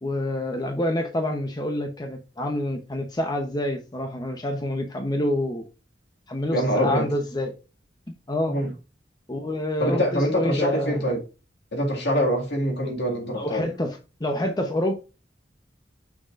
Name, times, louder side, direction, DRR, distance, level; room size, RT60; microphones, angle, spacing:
voice 1, 0.0-5.7 6.3-7.5 8.3-8.5 9.3-11.0 13.3-14.9, left 1 dB, 25° left, 0.8 m, -27 dB
voice 2, 6.5-7.1 8.5-8.7 9.8-11.2 11.7-13.7, equal, 70° left, 2.0 m, -24 dB
6.4 x 6.0 x 2.5 m
head